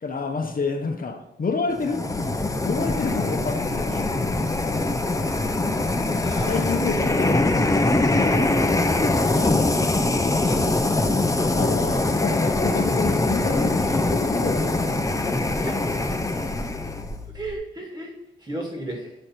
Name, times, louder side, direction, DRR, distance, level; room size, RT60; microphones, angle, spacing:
voice 1, 0.0-2.0 2.6-4.1 6.3-10.0 11.4-15.3, left 4 dB, 45° left, 3 dB, 0.8 m, -29 dB
sound 1, 1.7-17.1, left 2 dB, 15° left, 0.6 m, -23 dB
sound 2, 2.0-17.6, left 2 dB, 75° right, 1.4 m, -37 dB
voice 2, 6.2-7.2 10.4-10.7 15.5-15.8 17.3-18.1 18.4-19.1, right 1 dB, 20° right, 0 dB, 1.7 m, -34 dB
9.0 x 3.3 x 4.2 m, 0.82 s
cardioid pair, 85°, 20 cm